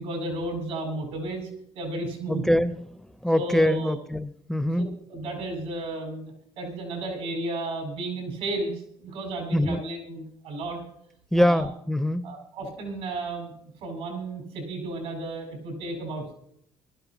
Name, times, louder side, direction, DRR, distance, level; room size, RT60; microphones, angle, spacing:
voice 1, 0.0-1.5 1.7-2.4 3.3-4.0 4.8-10.8 11.4-11.7 12.2-13.5 13.8-16.3, right 2 dB, 85° right, 1 dB, 5.4 m, -33 dB
voice 2, 2.3-5.0 9.5-9.8 11.3-12.4, left 1 dB, 5° left, 14 dB, 0.5 m, -24 dB
21.5 x 13.0 x 3.0 m, 0.72 s
supercardioid pair, 90°, 11 cm